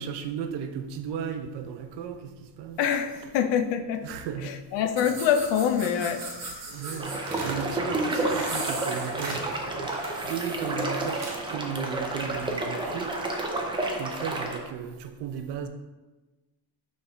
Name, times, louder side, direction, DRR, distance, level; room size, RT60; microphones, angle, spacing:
voice 1, 0.0-2.3 2.6-2.8 3.2-3.3 4.0-4.5 6.7-9.9 10.2-11.2 11.5-13.1 14.0-15.7, right 7 dB, 65° right, 7 dB, 0.7 m, -35 dB
voice 2, 2.8-4.0 4.7-6.3, left 8 dB, 70° left, 9 dB, 0.7 m, -25 dB
sound 1, 4.9-11.5, right 2 dB, 35° right, 1.4 m, -38 dB
sound 2, 7.0-14.6, right 2 dB, 10° right, 0.5 m, -30 dB
5.5 x 3.4 x 5.5 m, 1.2 s
cardioid pair, 160°, 45 cm